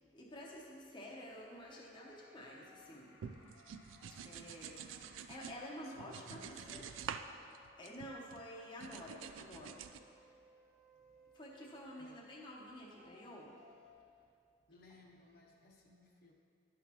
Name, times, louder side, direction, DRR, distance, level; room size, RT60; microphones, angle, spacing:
voice 1, 0.0-3.2 4.1-6.4 6.7-6.8 7.8-9.8 11.3-13.7, equal, 25° left, -3 dB, 0.8 m, -50 dB
sound 1, 1.4-11.1, left 2 dB, 85° left, 0.8 m, -66 dB
sound 2, 1.5-2.9 3.5-3.7 4.0-4.1 4.4-4.6 4.9-5.0 5.3-5.5 5.7-5.9 6.2-11.9 12.6-13.9, left 1 dB, 40° right, 1.3 m, -66 dB
sound 3, 3.2-5.6 6.0-7.3 7.5-8.4 8.8-10.0, right 7 dB, 85° right, 0.3 m, -48 dB
voice 2, 5.8-6.9 12.0-12.2 14.7-16.3, left 1 dB, 55° left, -1 dB, 0.8 m, -58 dB
10.5 x 6.1 x 2.9 m, 2.4 s
head